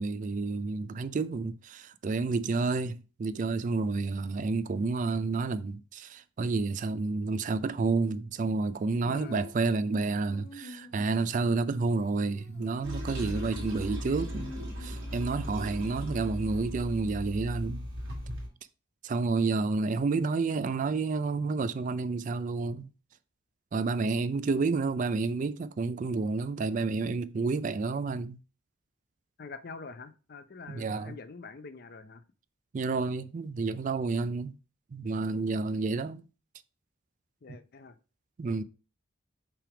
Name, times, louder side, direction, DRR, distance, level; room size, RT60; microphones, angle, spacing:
voice 1, 0.0-14.5 14.8-17.9 19.0-22.9 23.7-28.4 30.7-31.1 32.7-34.5 34.9-36.3 38.4-38.6, right 3 dB, 40° right, 0.3 m, -30 dB
Female singing, 8.8-16.5, left 2 dB, 70° left, 1.8 m, -50 dB
voice 2, 9.1-9.4 13.2-13.6 29.4-32.2 37.4-38.0, left 4 dB, 50° left, 0.6 m, -45 dB
Toilet flush, 12.8-18.5, equal, 90° right, 2.3 m, -37 dB
5.8 x 3.4 x 5.0 m
head